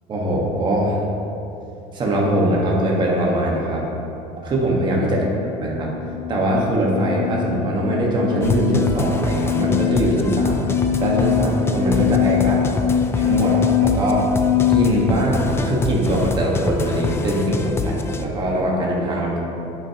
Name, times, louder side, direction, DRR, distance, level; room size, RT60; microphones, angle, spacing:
voice 1, 0.1-1.1 1.9-3.9 4.4-5.2 5.6-5.9 6.3-10.6 11.0-12.7 13.1-14.2 14.7-19.4, right 1 dB, 30° right, -2 dB, 1.3 m, -21 dB
sound 1, 5.4-14.8, left 10 dB, 45° left, 1.0 m, -23 dB
sound 2, 8.4-18.3, left 3 dB, 15° left, 0.4 m, -26 dB
11.0 x 5.7 x 2.9 m, 2.8 s
cardioid pair, 140°, 15 cm